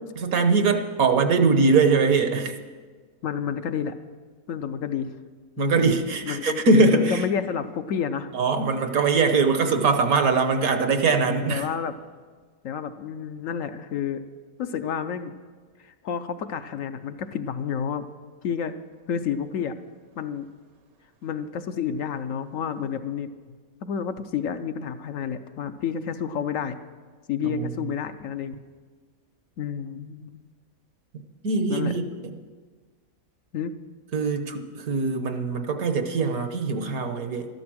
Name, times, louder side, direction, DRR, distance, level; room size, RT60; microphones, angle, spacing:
voice 1, 0.2-2.5 5.6-7.2 8.3-11.6 27.4-27.7 31.4-32.3 34.1-37.5, right 4 dB, 70° right, 7 dB, 1.4 m, -22 dB
voice 2, 3.2-4.0 4.5-5.1 5.6-6.0 6.2-6.6 6.9-8.3 11.2-11.9 12.6-14.2 14.6-15.3 16.0-18.1 18.4-18.7 19.1-19.7 20.2-20.5 21.2-23.3 23.8-26.7 27.3-28.6 29.6-30.4 31.7-31.9 33.5-33.7, left 7 dB, 65° left, 9 dB, 1.0 m, -30 dB
13.0 x 12.0 x 6.2 m, 1.5 s
omnidirectional pair, 1.6 m